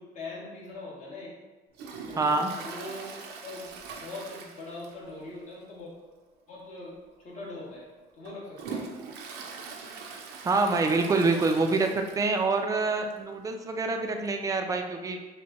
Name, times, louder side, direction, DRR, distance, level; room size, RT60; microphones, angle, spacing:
voice 1, 0.0-1.3 2.0-3.1 3.4-5.9 6.5-6.9 7.2-7.8 8.2-8.9, left 2 dB, 45° left, -5 dB, 1.4 m, -41 dB
Toilet flush, 1.7-5.2 5.5-5.6 6.0-6.1 6.9-7.1 7.6-12.5 12.8-12.9 13.1-13.2 14.3-14.4, right 5 dB, 80° right, 0.6 m, -42 dB
voice 2, 2.2-2.5 10.4-15.2, right 3 dB, 20° right, 4 dB, 0.4 m, -26 dB
6.1 x 2.2 x 3.0 m, 1.2 s
cardioid pair, 110°, 17 cm